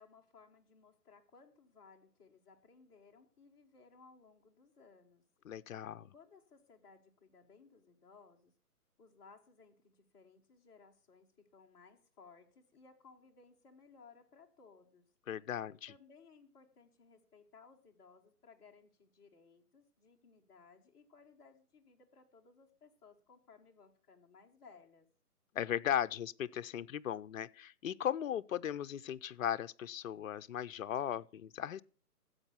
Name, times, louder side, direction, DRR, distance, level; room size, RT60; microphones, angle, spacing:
voice 1, 0.0-5.2 6.1-8.5 9.0-15.1 15.9-25.1, left 5 dB, 10° left, 1.1 m, -61 dB
voice 2, 5.5-6.1 15.3-15.9 25.5-31.8, left 10 dB, 60° left, 0.6 m, -37 dB
14.0 x 8.1 x 5.6 m
hypercardioid pair, 155°, 47 cm